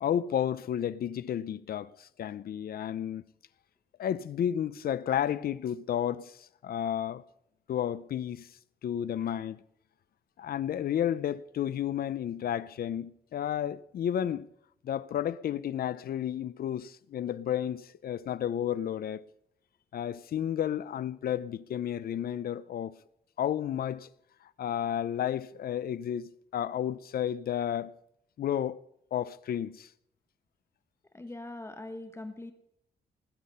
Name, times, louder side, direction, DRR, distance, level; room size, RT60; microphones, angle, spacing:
voice 1, 0.0-3.2 4.0-7.2 7.7-8.5 8.8-9.6 10.4-14.5 14.8-19.3 19.9-23.0 23.4-24.1 24.6-27.9 28.4-28.8 29.1-29.9, left 10 dB, 65° left, 0.6 m, -32 dB
voice 2, 31.1-32.5, left 2 dB, 15° left, 1.2 m, -41 dB
19.5 x 8.5 x 5.6 m
cardioid pair, 115°, 17 cm